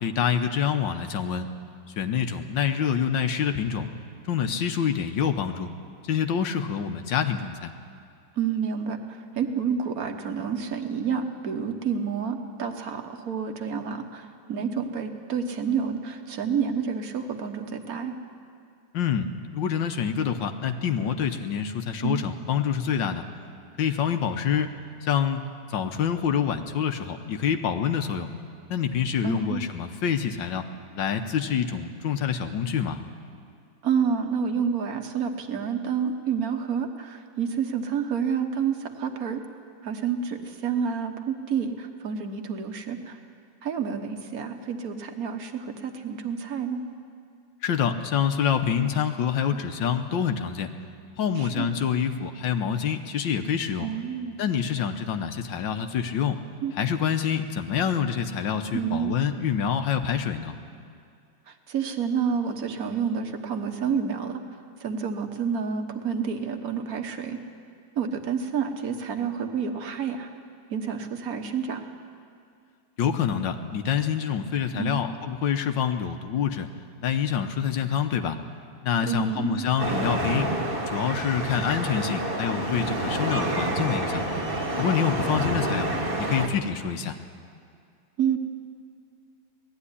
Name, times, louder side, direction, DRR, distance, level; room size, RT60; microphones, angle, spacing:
voice 1, 0.0-1.5 2.0-3.9 4.3-5.7 6.0-7.7 18.9-23.3 23.8-24.7 25.0-25.4 25.7-28.3 28.7-30.7 30.9-33.0 47.6-50.7 51.2-53.9 54.4-56.4 56.7-60.5 73.0-76.7 77.0-78.4 78.8-80.5 80.9-84.2 84.8-85.9 86.2-87.2, left 8 dB, 80° left, 7 dB, 1.6 m, -26 dB
voice 2, 8.4-18.1 22.0-22.2 29.2-29.6 33.8-39.4 39.8-43.2 43.6-46.8 51.4-51.7 53.8-54.4 56.6-56.8 58.7-59.2 61.5-64.4 64.8-67.4 67.9-70.3 70.7-71.9 74.7-75.1 79.0-79.6 88.2-88.4, right 7 dB, 55° right, 6 dB, 1.7 m, -29 dB
sound 1, 79.8-86.5, right 1 dB, 30° right, 1.8 m, -28 dB
18.5 x 14.0 x 9.9 m, 2.3 s
omnidirectional pair, 2.0 m